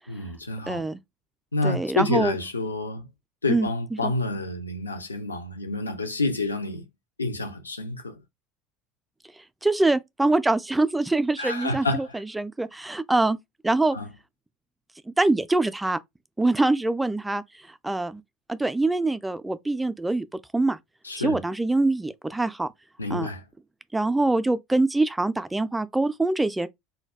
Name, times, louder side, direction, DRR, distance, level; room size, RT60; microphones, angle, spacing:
voice 1, 0.1-0.8 1.5-3.1 3.4-6.8 7.2-8.2 11.4-12.1 13.9-14.1 21.0-21.4 23.0-23.4, left 2 dB, 80° left, 0.4 m, -28 dB
voice 2, 0.7-1.0 1.6-2.4 3.5-4.1 9.6-13.4 13.6-14.0 15.1-16.0 16.4-17.4 17.8-18.2 18.5-20.3 20.5-20.8 21.2-22.7 23.1-23.3 23.9-26.7, right 2 dB, 10° right, 0.3 m, -24 dB
2.2 x 2.2 x 3.3 m
figure-of-eight pair, 70°, 0 cm